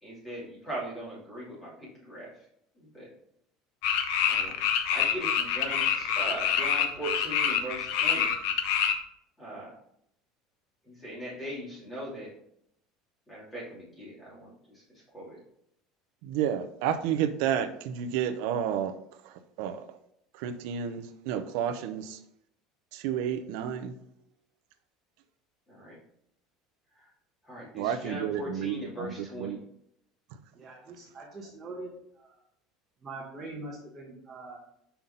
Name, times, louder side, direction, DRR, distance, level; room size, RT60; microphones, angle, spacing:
voice 1, 0.0-2.3 2.8-3.1 4.3-4.6 4.9-8.3 9.4-9.7 10.9-12.3 13.3-14.5 15.1-15.4 25.7-25.9 27.0-27.1 27.4-29.6, right 1 dB, 15° left, -7 dB, 2.8 m, -39 dB
sound 1, 3.8-8.9, left 8 dB, 75° left, 0.8 m, -26 dB
voice 2, 16.2-18.9 19.6-19.8 20.3-22.2 22.9-23.9 27.7-29.6, right 9 dB, 70° right, 10 dB, 0.6 m, -31 dB
voice 3, 30.5-31.9 32.2-32.4 33.0-34.6, right 2 dB, 25° right, -3 dB, 1.1 m, -42 dB
5.7 x 5.6 x 3.8 m, 0.73 s
cardioid pair, 165°, 0 cm